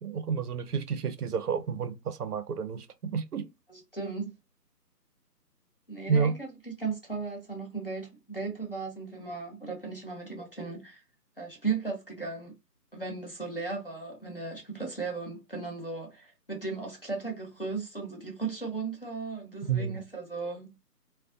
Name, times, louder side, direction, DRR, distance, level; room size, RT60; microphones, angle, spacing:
voice 1, 0.0-3.5 6.1-6.4 19.7-20.0, right 6 dB, 65° right, 0.5 m, -30 dB
voice 2, 3.7-4.3 5.9-11.0 11.4-12.5 12.9-20.7, right 4 dB, 35° left, 0.6 m, -36 dB
2.4 x 2.1 x 2.5 m
figure-of-eight pair, 170°, 49 cm